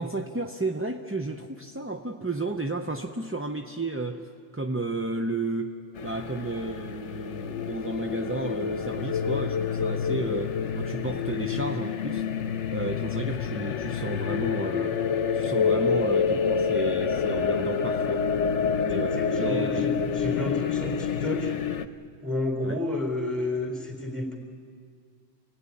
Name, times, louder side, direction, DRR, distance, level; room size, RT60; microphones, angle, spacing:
voice 1, 0.0-4.3 4.5-12.2 12.7-15.0 15.3-18.2 18.8-19.9 22.6-22.8, right 2 dB, 15° right, 3 dB, 0.5 m, -32 dB
sound 1, 6.0-21.9, left 6 dB, 75° left, 1.1 m, -28 dB
voice 2, 19.1-21.6 22.2-24.4, left 1 dB, ahead, 2 dB, 3.9 m, -31 dB
26.5 x 18.5 x 9.9 m, 2.2 s
omnidirectional pair, 1.2 m